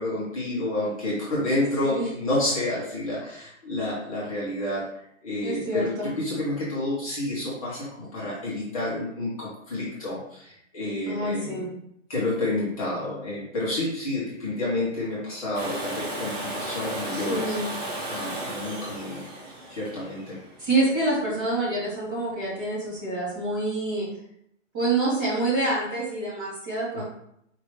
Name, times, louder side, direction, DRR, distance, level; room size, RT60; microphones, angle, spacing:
voice 1, 0.0-4.9 5.2-11.6 12.1-17.5 18.1-19.2 19.7-20.4 26.9-27.0, left 1 dB, 30° left, -7 dB, 1.1 m, -29 dB
voice 2, 5.4-6.1 11.1-11.7 17.1-17.7 20.6-24.1 24.7-27.0, right 2 dB, 20° right, -9 dB, 1.7 m, -27 dB
Domestic sounds home sounds, 15.5-21.3 23.3-23.4, right 1 dB, 40° right, 1.2 m, -35 dB
4.8 x 2.9 x 3.2 m, 0.73 s
hypercardioid pair, 170°, 37 cm